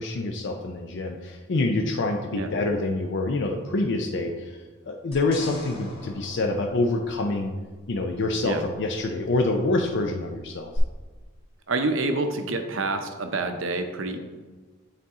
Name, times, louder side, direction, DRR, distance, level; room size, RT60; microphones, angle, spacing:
voice 1, 0.0-4.6 4.8-7.5 7.9-10.7, left 2 dB, 60° left, 3 dB, 0.5 m, -26 dB
sound 1, 5.1-7.6 10.7-10.8, left 1 dB, 30° left, 1.9 m, -42 dB
voice 2, 11.7-14.2, right 2 dB, 65° right, 6 dB, 0.7 m, -27 dB
8.8 x 4.1 x 3.6 m, 1.4 s
head